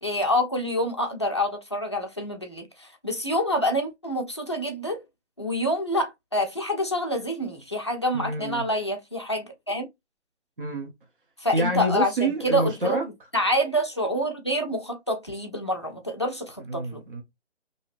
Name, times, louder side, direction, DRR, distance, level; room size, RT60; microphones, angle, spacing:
voice 1, 0.0-5.0 5.4-9.9 11.4-13.0 13.3-17.0, equal, 25° left, 0.4 m, -27 dB
voice 2, 8.1-8.7 10.6-10.9 11.5-13.1 16.7-17.2, right 1 dB, 50° right, 0.8 m, -27 dB
2.7 x 2.7 x 3.1 m
hypercardioid pair, 160°, 34 cm